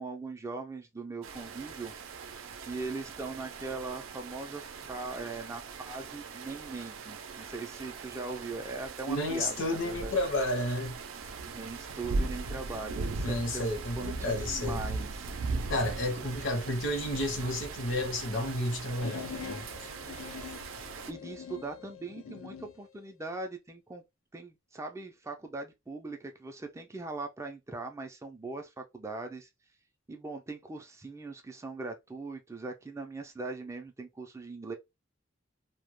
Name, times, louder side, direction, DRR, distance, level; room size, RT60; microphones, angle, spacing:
voice 1, 0.0-1.9 2.6-10.1 11.4-13.7 14.0-15.3 21.1-24.0 24.3-29.5 30.1-34.7, right 3 dB, 15° right, 0.3 m, -40 dB
sound 1, 1.2-21.1, right 3 dB, 90° right, 0.4 m, -39 dB
voice 2, 9.1-11.0 13.2-14.8 15.7-19.9, left 1 dB, 65° left, 0.7 m, -31 dB
sound 2, 19.0-22.8, left 6 dB, 90° left, 0.3 m, -44 dB
2.1 x 2.1 x 3.0 m
head